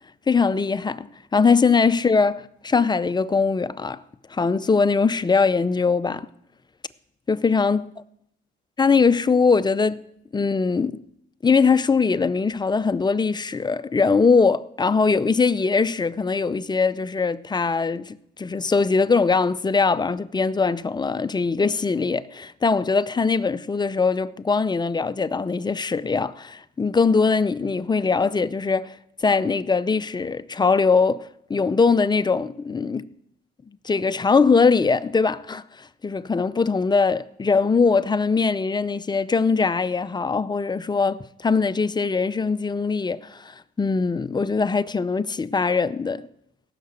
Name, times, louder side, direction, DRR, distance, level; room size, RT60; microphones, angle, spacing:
voice 1, 0.3-4.0 4.3-6.3 7.3-7.9 8.8-10.0 10.3-11.0 11.4-28.9 29.2-33.1 33.8-46.3, left 4 dB, 20° left, 0.6 m, -21 dB
16.5 x 6.7 x 8.0 m
cardioid pair, 90°, 20 cm